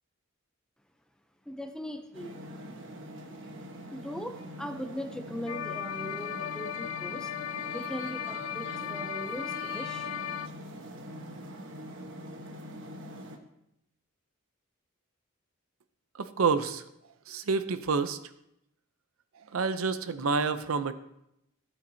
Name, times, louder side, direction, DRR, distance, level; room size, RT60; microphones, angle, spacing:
voice 1, 1.5-2.4 3.9-7.3 7.7-10.1, equal, 5° left, 7 dB, 0.6 m, -40 dB
sound 1, 2.1-13.4, equal, 65° right, 1.1 m, -44 dB
sound 2, 5.5-10.5, left 9 dB, 85° left, 0.4 m, -36 dB
voice 2, 16.1-16.8 17.3-18.2 19.4-20.9, right 5 dB, 90° right, 12 dB, 0.6 m, -28 dB
14.0 x 8.5 x 2.8 m, 0.80 s
head